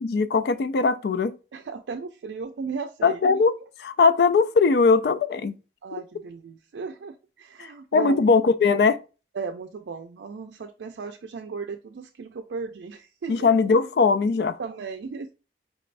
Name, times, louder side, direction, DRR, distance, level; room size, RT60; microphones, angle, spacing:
voice 1, 0.0-1.4 3.0-3.5 3.8-5.6 7.6-9.0 13.3-14.6, left 4 dB, 65° left, 0.3 m, -20 dB
voice 2, 1.5-3.2 5.8-8.2 9.3-13.5 14.6-15.3, right 5 dB, 85° right, 0.4 m, -35 dB
4.7 x 2.5 x 3.2 m
head